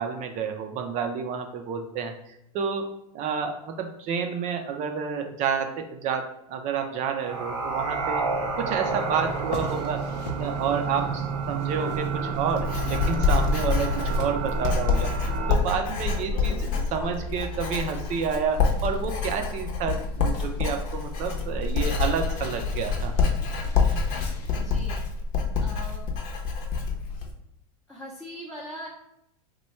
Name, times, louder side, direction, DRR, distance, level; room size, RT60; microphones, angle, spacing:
voice 1, 0.0-2.9 3.1-8.2 8.6-10.0 10.3-15.1 15.5-23.1, right 6 dB, 35° right, 5 dB, 0.4 m, -29 dB
sound 1, 7.2-15.5, right 5 dB, 80° right, 0.7 m, -30 dB
sound 2, 8.8-24.7, left 2 dB, 90° left, 0.7 m, -43 dB
Writing, 11.9-27.3, left 5 dB, 45° left, 0.8 m, -27 dB
voice 2, 24.5-25.0 25.6-26.1 27.9-28.9, equal, 5° left, -7 dB, 0.6 m, -41 dB
3.1 x 2.2 x 4.2 m, 0.80 s
hypercardioid pair, 120°, 20 cm